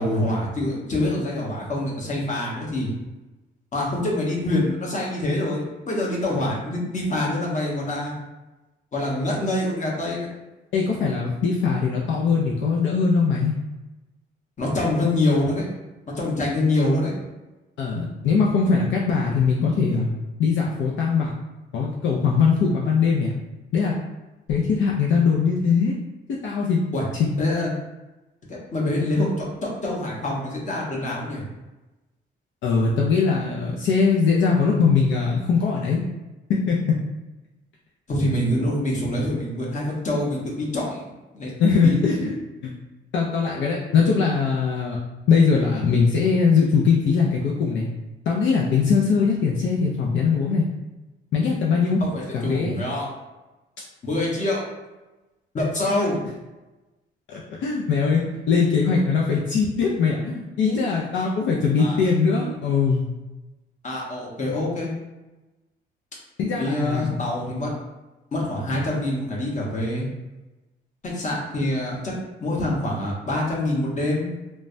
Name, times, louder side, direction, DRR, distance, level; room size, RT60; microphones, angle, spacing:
voice 1, 0.0-2.9 3.7-8.1 8.9-10.3 14.6-15.7 16.1-17.1 26.9-27.0 27.4-27.7 28.5-31.4 38.1-41.5 41.8-42.3 52.0-53.1 54.0-54.6 55.5-56.2 61.8-62.0 63.8-64.9 66.6-67.7 68.3-70.1 71.0-72.1 72.4-74.3, left 1 dB, 40° left, -3 dB, 1.0 m, -25 dB
voice 2, 10.7-13.5 17.8-20.1 20.4-21.3 21.7-23.3 23.7-23.9 24.5-26.0 26.3-26.8 27.2-27.3 32.6-36.0 36.5-37.0 41.6-42.3 42.6-42.7 43.1-45.0 45.3-47.9 48.3-50.7 51.3-52.0 52.3-52.8 57.3-63.1 66.4-67.2, left 5 dB, 70° left, -3 dB, 0.5 m, -21 dB
3.1 x 2.2 x 2.6 m, 1.1 s
cardioid pair, 90°, 20 cm